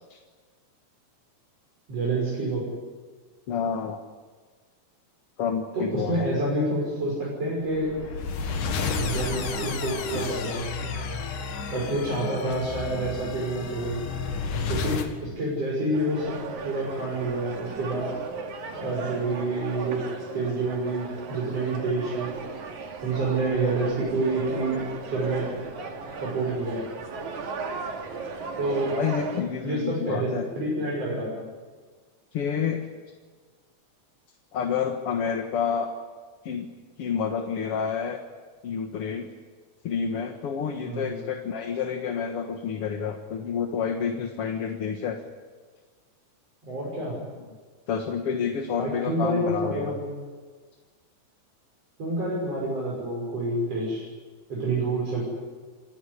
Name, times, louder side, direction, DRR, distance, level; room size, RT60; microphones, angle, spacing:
voice 1, 1.9-2.7 5.7-7.9 9.0-10.6 11.7-13.9 14.7-16.4 16.6-18.1 18.8-20.0 20.3-22.3 23.0-25.5 26.2-26.9 28.6-29.0 29.6-31.5 40.8-41.1 46.6-47.2 48.8-50.1 52.0-54.1 54.5-55.2, right 2 dB, 50° right, -4 dB, 7.4 m, -28 dB
voice 2, 3.5-4.0 5.4-6.3 29.0-30.4 32.3-32.9 34.5-35.9 36.4-36.7 37.0-38.2 38.6-39.3 39.8-45.2 47.9-49.9, left 7 dB, 55° left, 4 dB, 2.2 m, -29 dB
sound 1, 7.7-15.1, left 5 dB, 90° left, 3.5 m, -31 dB
sound 2, 15.9-29.4, right 4 dB, 75° right, 3.8 m, -36 dB
28.5 x 16.5 x 10.0 m, 1.5 s
omnidirectional pair, 3.5 m